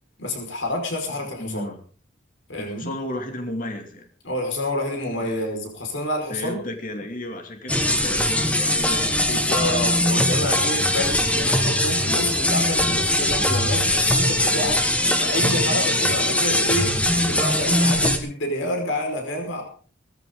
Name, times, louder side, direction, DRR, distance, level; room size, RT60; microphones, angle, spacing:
voice 1, 0.2-1.6 2.5-2.9 4.2-6.6 9.3-19.6, left 1 dB, 75° left, 3 dB, 5.3 m, -28 dB
voice 2, 1.4-1.8 2.6-4.1 5.2-5.5 6.3-9.2 15.8-16.1, left 1 dB, 45° left, 4 dB, 2.6 m, -34 dB
sound 1, 7.7-18.2, left 1 dB, 5° left, 1.6 m, -21 dB
18.5 x 14.5 x 3.9 m, 0.43 s
head